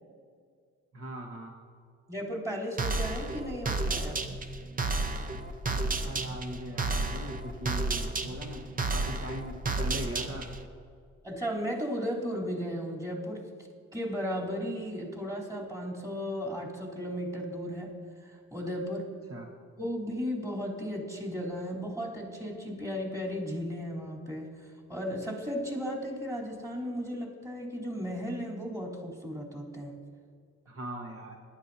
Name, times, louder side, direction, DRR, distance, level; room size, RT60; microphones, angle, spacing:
voice 1, 0.9-1.5 5.7-10.5 19.3-19.5 30.7-31.4, right 1 dB, 50° right, 0 dB, 1.4 m, -40 dB
voice 2, 2.1-4.2 11.2-13.5 13.9-19.1 19.8-30.0, equal, 10° right, -4 dB, 3.3 m, -35 dB
sound 1, 2.8-10.7, right 3 dB, 30° right, 0.8 m, -32 dB
19.0 x 12.0 x 2.7 m, 2.1 s
cardioid pair, 90°, 30 cm